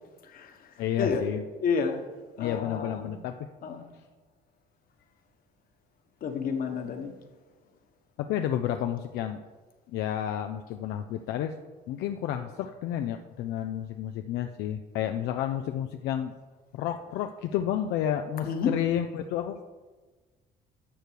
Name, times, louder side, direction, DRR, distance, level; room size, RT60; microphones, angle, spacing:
voice 1, 0.8-1.4 2.4-3.5 8.2-9.4 9.9-11.5 11.9-16.4 16.7-19.6, left 10 dB, 85° left, 6 dB, 0.5 m, -31 dB
voice 2, 1.6-2.0 2.4-3.2 3.6-3.8 6.2-7.1 18.4-18.8, left 5 dB, 60° left, 6 dB, 1.3 m, -29 dB
11.5 x 6.8 x 4.6 m, 1.3 s
cardioid pair, 110°, 17 cm